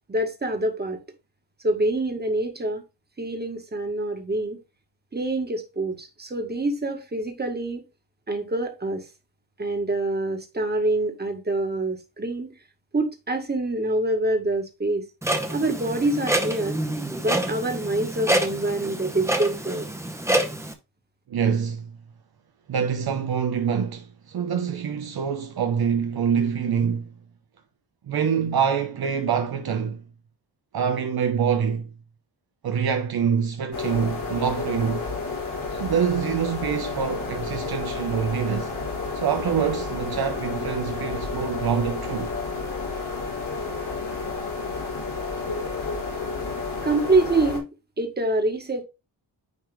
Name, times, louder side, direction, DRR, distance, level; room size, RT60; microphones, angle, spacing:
voice 1, 0.1-1.0 1.6-2.8 3.2-4.6 5.1-7.8 8.3-9.1 9.6-12.6 12.9-15.0 15.5-16.8 17.2-19.9 46.8-47.7 48.0-48.8, right 2 dB, 25° right, 1.6 m, -26 dB
Clock, 15.2-20.7, right 1 dB, 5° right, 0.9 m, -27 dB
voice 2, 21.3-21.9 22.7-27.1 28.1-30.0 30.7-31.9 32.6-35.1 35.8-38.8 39.1-42.3, right 7 dB, 60° right, 0.8 m, -25 dB
sound 1, 33.7-47.6, left 4 dB, 65° left, 2.9 m, -31 dB
9.5 x 3.3 x 3.5 m
wide cardioid pair, 105°, 42 cm